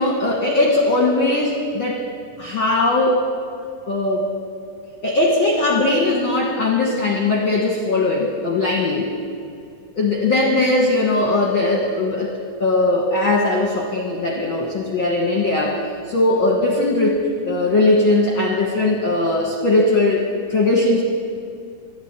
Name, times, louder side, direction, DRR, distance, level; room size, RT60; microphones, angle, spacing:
voice 1, 0.0-2.0 2.4-3.3 3.9-4.3 5.0-9.1 10.0-20.2 20.5-21.0, left 2 dB, 55° left, -1 dB, 1.5 m, -19 dB
12.5 x 11.5 x 8.9 m, 2.4 s
omnidirectional pair, 4.1 m